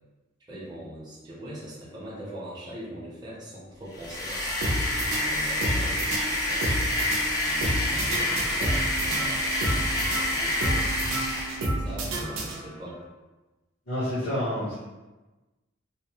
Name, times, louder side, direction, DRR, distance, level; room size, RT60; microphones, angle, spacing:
voice 1, 0.5-11.5 11.8-13.0, equal, 20° right, -9 dB, 0.7 m, -42 dB
sound 1, 3.9-11.7, left 1 dB, 20° left, 0.4 m, -28 dB
sound 2, 4.6-12.9, right 1 dB, 80° right, 0.5 m, -30 dB
voice 2, 13.9-14.8, left 1 dB, 55° left, -9 dB, 0.6 m, -28 dB
2.7 x 2.0 x 2.8 m, 1.1 s
head